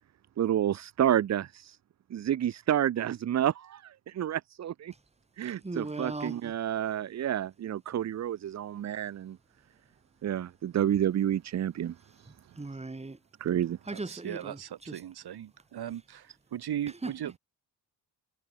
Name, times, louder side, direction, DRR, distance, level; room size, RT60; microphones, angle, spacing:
voice 1, 0.4-1.8 2.1-4.9 5.4-9.4 10.2-12.0 12.2-12.3 13.4-13.8, right 10 dB, 40° right, 0.5 m, -29 dB
voice 2, 5.6-6.4 12.6-13.2 13.9-14.6 14.9-15.0 17.0-17.1, right 3 dB, 15° right, 2.3 m, -37 dB
voice 3, 13.9-17.3, right 10 dB, 65° right, 1.4 m, -38 dB
wide cardioid pair, 130°, 42 cm